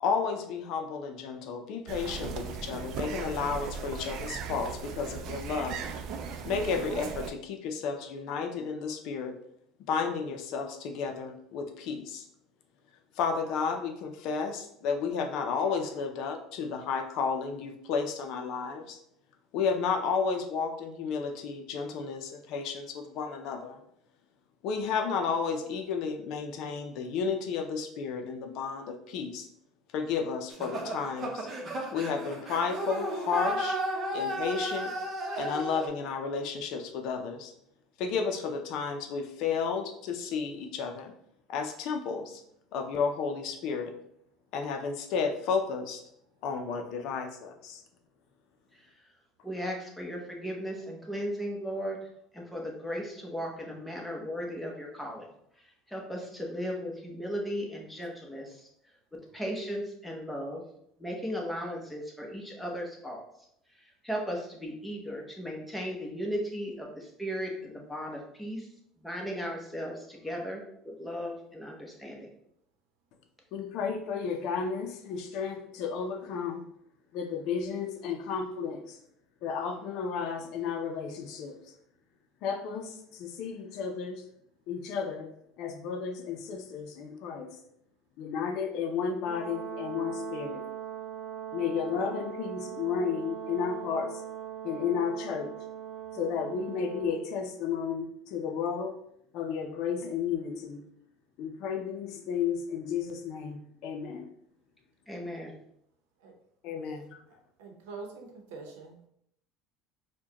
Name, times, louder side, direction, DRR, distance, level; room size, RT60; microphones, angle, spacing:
voice 1, 0.0-5.8 6.4-9.4 9.9-12.3 13.2-19.0 19.5-23.8 24.6-29.5 29.9-31.5 31.9-33.8 34.1-34.9 35.4-37.5 38.0-41.1 41.5-42.4 42.7-43.9 44.5-46.0 46.4-47.8 73.5-76.6 77.1-79.0 79.4-81.5 82.4-84.2 84.7-87.5 88.2-90.7 91.5-94.2 94.6-95.5 96.1-98.9 99.3-100.8 101.4-104.3 106.6-107.2, left 6 dB, 60° left, 5 dB, 0.5 m, -32 dB
sound 1, 1.9-7.3, right 6 dB, 55° right, 0.4 m, -37 dB
sound 2, 30.5-35.9, right 1 dB, 30° right, 0.8 m, -33 dB
voice 2, 49.4-52.0 52.3-55.3 55.9-58.6 59.1-60.6 61.0-63.2 64.0-68.7 69.0-72.3 105.1-105.5, equal, 5° left, -1 dB, 0.8 m, -36 dB
Brass instrument, 89.2-97.2, right 9 dB, 20° left, 1.3 m, -40 dB
voice 3, 107.3-109.0, right 4 dB, 85° right, 2 dB, 0.8 m, -45 dB
4.5 x 2.2 x 2.9 m, 0.73 s
supercardioid pair, 125°, 0 cm